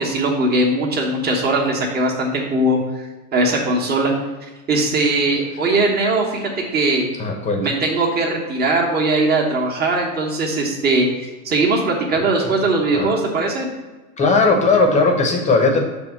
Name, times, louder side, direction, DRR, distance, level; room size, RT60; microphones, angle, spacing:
voice 1, 0.0-4.1 4.7-7.1 7.6-11.1 11.4-13.7, right 2 dB, 20° right, 0 dB, 1.4 m, -20 dB
voice 2, 7.2-7.7 12.1-12.5 12.9-13.1 14.2-15.8, left 3 dB, 15° left, 3 dB, 1.0 m, -18 dB
6.5 x 3.5 x 6.0 m, 1.2 s
hypercardioid pair, 115°, 46 cm